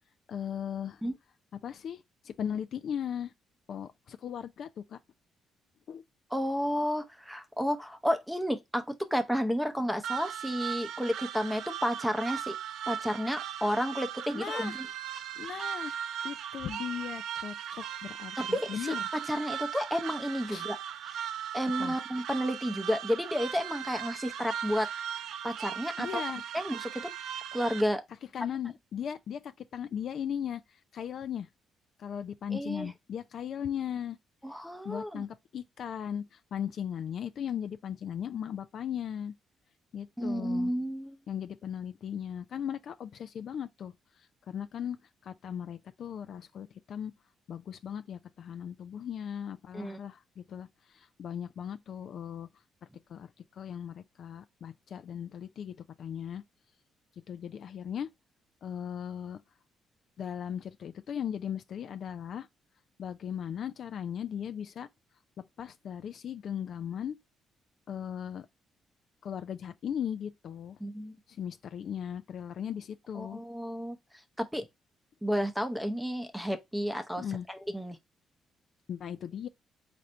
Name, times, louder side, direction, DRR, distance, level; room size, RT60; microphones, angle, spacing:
voice 1, 0.3-1.0 1.6-3.3 3.7-5.0 5.9-6.0 14.3-14.8 15.4-15.9 16.2-19.0 20.5-20.7 21.8-22.0 26.0-26.4 28.3-30.6 30.9-31.5 32.0-34.2 34.8-39.3 39.9-40.7 41.3-43.9 44.5-45.0 45.2-47.1 47.5-52.5 53.1-53.3 53.5-56.4 57.3-58.1 58.6-59.4 60.2-62.5 63.0-64.9 65.6-67.2 67.9-68.5 69.2-70.8 71.4-73.4 77.2-77.5 78.9-79.5, left 9 dB, 60° left, 0.4 m, -37 dB
voice 2, 6.3-12.5 12.9-14.9 18.4-18.9 19.3-20.8 21.0-21.3 21.5-24.9 25.4-26.2 26.5-27.1 27.5-28.0 32.5-32.9 34.4-35.2 40.2-41.2 49.7-50.0 70.8-71.2 73.2-74.0 74.4-74.7 75.2-78.0, equal, ahead, 0.8 m, -31 dB
sound 1, 10.0-27.8, right 9 dB, 75° right, 0.3 m, -38 dB
4.1 x 2.6 x 4.3 m
cardioid pair, 90°, 0 cm